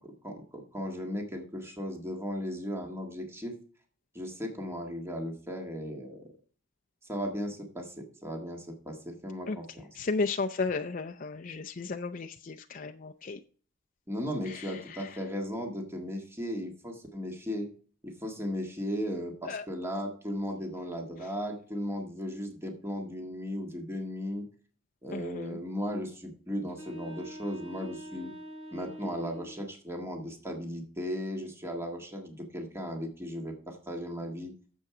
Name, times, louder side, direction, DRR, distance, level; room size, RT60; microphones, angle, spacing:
voice 1, 0.0-3.6 4.1-6.3 7.0-9.9 14.1-17.7 18.0-24.5 25.0-28.3 28.7-34.5, equal, 15° right, 2 dB, 1.7 m, -36 dB
voice 2, 10.0-13.4 14.5-15.1 19.4-19.6 25.1-25.6, left 4 dB, 45° left, 5 dB, 0.5 m, -34 dB
sound 1, 26.7-29.7, equal, 85° right, 5.2 m, -44 dB
9.2 x 7.2 x 4.9 m, 0.43 s
head